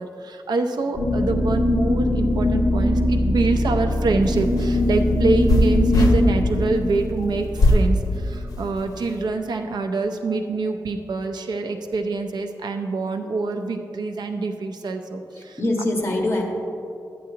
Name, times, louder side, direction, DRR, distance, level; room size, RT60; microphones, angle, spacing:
voice 1, 0.0-15.6, right 3 dB, 75° right, 5 dB, 0.6 m, -25 dB
sound 1, 0.9-8.9, left 1 dB, 5° left, 2.4 m, -22 dB
sound 2, 4.2-6.2 7.6-7.9 8.5-9.1, left 1 dB, 55° left, 0.9 m, -19 dB
voice 2, 15.4-16.4, left 1 dB, 35° left, 0 dB, 1.5 m, -24 dB
11.5 x 9.3 x 2.9 m, 2.6 s
wide cardioid pair, 135°, 7 cm